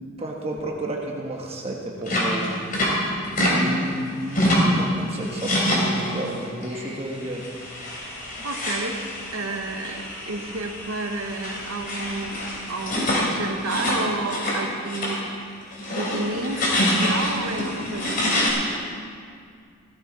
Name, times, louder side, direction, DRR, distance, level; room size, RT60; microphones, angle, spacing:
voice 1, 0.2-2.5 3.4-3.9 4.2-7.5, right 1 dB, 30° right, -1 dB, 1.4 m, -31 dB
sound 1, 2.1-3.6 3.9-4.8 5.2-6.3 6.6-6.9 7.4-14.6 14.8-15.2 15.6-18.5, left 1 dB, 40° left, 3.4 m, -26 dB
voice 2, 8.4-9.0 9.3-15.2 15.9-18.8, right 2 dB, 90° right, 4 dB, 1.4 m, -31 dB
16.5 x 14.0 x 4.0 m, 2.2 s
head